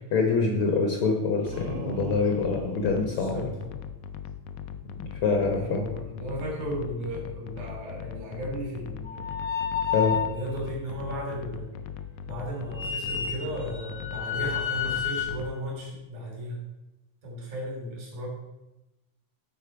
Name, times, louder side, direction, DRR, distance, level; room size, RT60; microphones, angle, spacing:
voice 1, 0.0-3.5 5.1-5.8 9.9-10.2, left 4 dB, 60° left, 2 dB, 1.4 m, -25 dB
sound 1, 1.4-3.9, right 3 dB, 65° right, 1.4 m, -41 dB
sound 2, 1.5-15.6, left 8 dB, 80° left, 1.4 m, -40 dB
voice 2, 2.9-3.8 5.5-9.3 10.2-11.7 12.2-16.6 17.2-18.3, equal, 80° right, -2 dB, 4.9 m, -35 dB
sound 3, 9.0-10.4 12.7-15.3, left 7 dB, 35° left, 0.9 m, -30 dB
10.0 x 4.4 x 5.7 m, 0.98 s
omnidirectional pair, 3.3 m